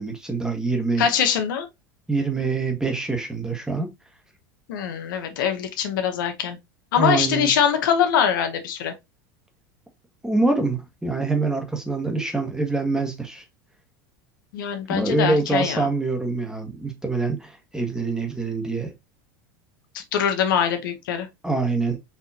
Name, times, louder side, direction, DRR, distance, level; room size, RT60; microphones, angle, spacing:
voice 1, 0.0-1.1 2.1-3.9 7.0-7.5 10.2-13.4 14.9-18.9 21.4-22.0, right 3 dB, 5° right, 1.2 m, -25 dB
voice 2, 1.0-1.7 4.7-6.6 6.9-8.9 14.5-15.9 19.9-21.3, left 8 dB, 85° left, 0.9 m, -23 dB
4.6 x 2.8 x 2.7 m
supercardioid pair, 115°, 11 cm